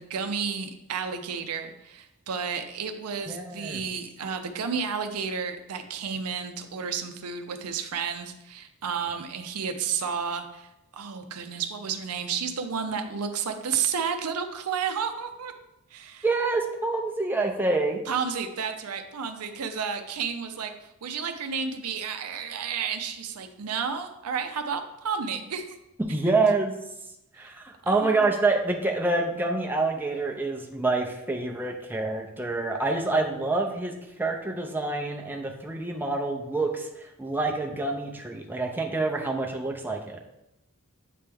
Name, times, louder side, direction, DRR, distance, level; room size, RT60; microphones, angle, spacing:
voice 1, 0.0-15.5 15.9-16.3 18.1-25.8 27.4-27.5 27.8-28.3, right 6 dB, 80° right, 7 dB, 0.6 m, -32 dB
voice 2, 3.3-3.8 16.2-18.0 26.0-26.7 27.4-40.2, right 3 dB, 10° right, 1 dB, 0.6 m, -27 dB
8.4 x 3.3 x 3.5 m, 0.88 s
head